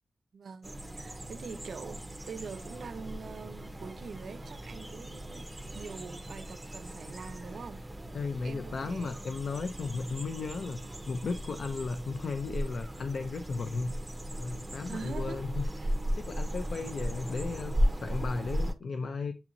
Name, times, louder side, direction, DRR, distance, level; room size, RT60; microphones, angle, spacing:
voice 1, 0.3-7.9 8.4-9.2 14.9-15.9 17.1-17.2, right 5 dB, 90° right, 0.4 m, -44 dB
sound 1, 0.6-18.7, equal, 15° right, 0.6 m, -36 dB
voice 2, 8.1-13.9 14.4-15.6 16.2-19.3, left 4 dB, 75° left, 0.4 m, -35 dB
7.1 x 2.9 x 2.5 m
wide cardioid pair, 160°, 0 cm